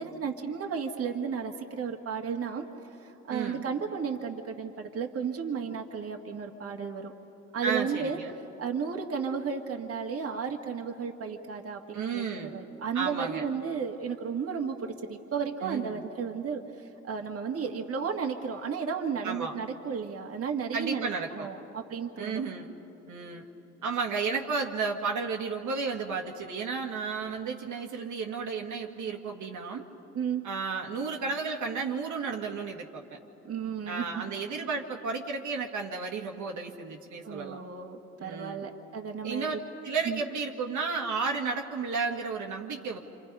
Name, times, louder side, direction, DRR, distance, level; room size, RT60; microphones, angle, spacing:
voice 1, 0.0-2.6 3.0-7.1 7.5-8.2 8.6-22.4 30.1-30.4 33.4-34.2 37.2-39.6 40.1-40.2, right 6 dB, 50° right, 2 dB, 1.8 m, -33 dB
voice 2, 3.3-3.6 7.6-8.3 11.9-12.6 12.9-13.4 15.6-16.0 19.2-19.5 20.7-21.5 22.2-22.7 23.1-23.5 23.8-29.8 30.4-33.2 33.9-37.6 38.2-38.6 39.2-43.0, right 5 dB, 75° right, 1 dB, 1.8 m, -33 dB
28.5 x 26.5 x 5.4 m, 2.9 s
cardioid pair, 90°, 30 cm